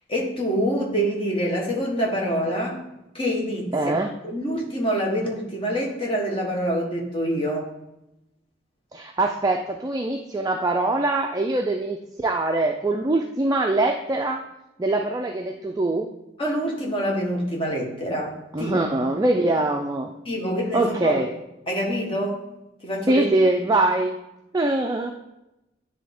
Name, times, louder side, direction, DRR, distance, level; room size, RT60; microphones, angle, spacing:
voice 1, 0.1-2.8 3.1-3.7 4.2-7.7 16.4-18.7 20.2-21.2 21.7-22.4 22.8-23.3, equal, 30° left, -1 dB, 1.3 m, -26 dB
voice 2, 3.7-4.1 8.9-14.4 14.8-16.1 18.5-20.1 20.7-21.3 23.1-24.2 24.5-25.1, right 2 dB, 20° right, 3 dB, 0.4 m, -23 dB
9.9 x 3.3 x 3.5 m, 0.90 s
head